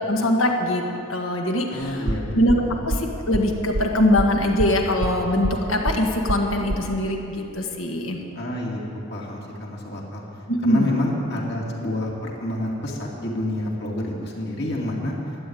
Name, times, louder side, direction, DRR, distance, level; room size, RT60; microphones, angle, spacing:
voice 1, 0.1-0.8 1.1-2.0 2.3-8.2 10.5-10.9, left 1 dB, 70° left, 2 dB, 1.6 m, -22 dB
voice 2, 1.7-2.8 8.3-8.8 9.1-10.3 10.6-15.1, left 1 dB, 50° left, -2 dB, 2.2 m, -28 dB
sound 1, 1.8-6.9, right 1 dB, 75° right, 0.8 m, -27 dB
12.5 x 8.5 x 9.3 m, 2.9 s
head